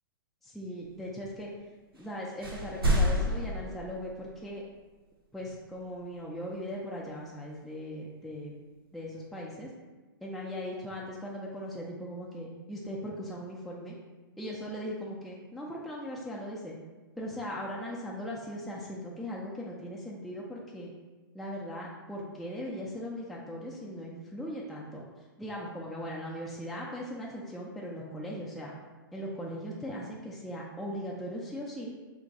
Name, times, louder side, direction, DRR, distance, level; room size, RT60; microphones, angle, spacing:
voice 1, 0.4-1.5 2.0-4.6 5.3-8.5 8.9-9.7 10.2-13.9 14.4-16.7 17.2-20.9 21.3-25.0 25.4-28.7 29.1-31.9, equal, ahead, -5 dB, 0.3 m, -39 dB
sound 1, 1.9-2.1 2.4-4.5, equal, 90° right, 0.7 m, -29 dB
2.5 x 2.2 x 3.8 m, 1.3 s
hypercardioid pair, 115°, 12 cm